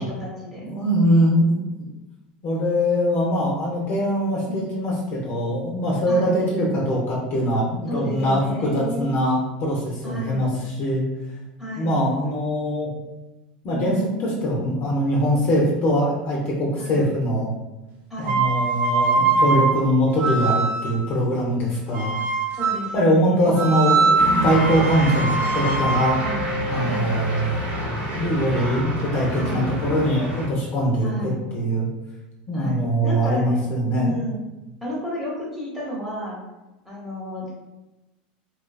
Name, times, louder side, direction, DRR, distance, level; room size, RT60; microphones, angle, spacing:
voice 1, 0.0-0.6 4.5-4.7 6.1-6.4 7.9-9.1 10.0-10.5 11.6-12.0 13.7-14.5 16.8-17.1 18.1-18.5 22.5-23.5 26.1-26.5 26.7-27.1 29.3-29.7 31.0-31.4 32.5-33.6 34.0-34.4 34.8-36.4 36.8-37.5, equal, 5° right, -6 dB, 1.0 m, -32 dB
voice 2, 0.6-1.7 2.4-11.0 11.8-12.9 13.6-17.5 18.2-22.2 22.9-26.2 26.7-27.6 28.2-31.9 32.5-34.1, equal, 45° left, -3 dB, 0.7 m, -22 dB
sound 1, 18.2-21.1 21.9-23.0 23.6-27.5, right 4 dB, 40° right, 0.4 m, -23 dB
sound 2, 24.2-30.5, right 1 dB, 80° right, 1.1 m, -28 dB
2.4 x 2.2 x 2.3 m, 1.0 s
supercardioid pair, 105°, 5 cm